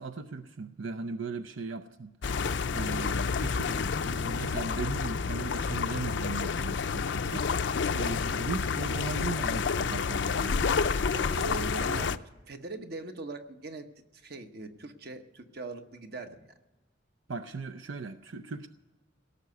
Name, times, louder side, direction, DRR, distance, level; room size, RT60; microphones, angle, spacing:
voice 1, 0.0-2.1 2.7-7.5 7.9-10.7 17.3-18.7, right 4 dB, 85° right, 0.6 m, -38 dB
sound 1, 2.2-12.2, left 5 dB, 65° left, 0.5 m, -29 dB
voice 2, 11.1-12.2 12.5-13.9 14.1-16.5, right 3 dB, 55° right, 1.1 m, -41 dB
17.5 x 6.7 x 9.5 m
head